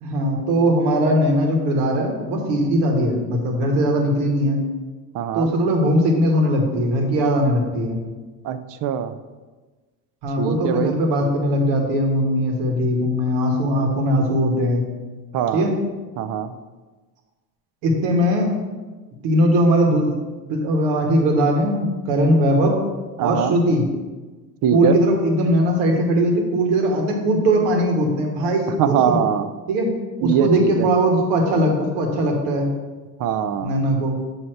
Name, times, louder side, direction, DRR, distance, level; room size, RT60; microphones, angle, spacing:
voice 1, 0.0-4.6 5.3-8.0 10.2-14.9 15.5-15.7 17.8-18.5 19.2-20.1 20.5-22.8 23.2-23.9 24.7-29.2 29.7-29.9 30.2-32.7 33.6-34.1, equal, 80° right, 2 dB, 1.3 m, -20 dB
voice 2, 5.1-5.5 8.4-9.1 10.4-10.9 15.3-15.7 16.2-16.5 23.2-23.6 24.6-25.0 28.8-29.5 30.2-30.9 33.2-33.9, right 9 dB, 50° right, 12 dB, 0.5 m, -22 dB
7.6 x 2.9 x 4.5 m, 1.3 s
cardioid pair, 115°, 43 cm